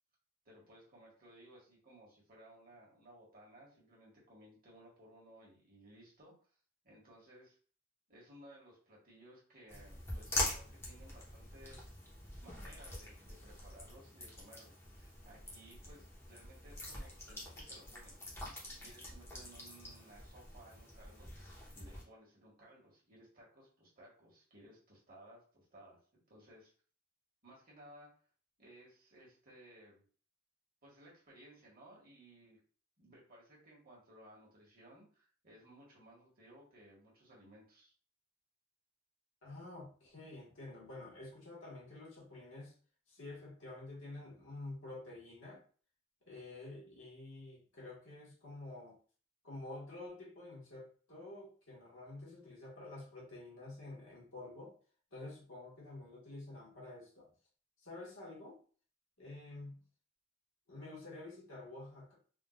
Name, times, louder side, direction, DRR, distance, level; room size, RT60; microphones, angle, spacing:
voice 1, 0.4-6.3 6.8-7.6 8.1-11.8 12.4-26.0 26.3-26.7 27.4-28.1 28.6-30.0 30.8-32.6 33.0-37.9, right 1 dB, 45° right, -4 dB, 1.4 m, -59 dB
sound 1, 9.7-22.0, left 1 dB, 10° left, 0.8 m, -44 dB
voice 2, 39.4-42.7 43.1-45.6 46.3-49.0 49.4-54.7 55.1-57.3 57.8-58.6 59.2-59.8 60.7-62.1, left 2 dB, 65° left, -4 dB, 1.4 m, -49 dB
3.6 x 2.4 x 2.4 m, 0.41 s
head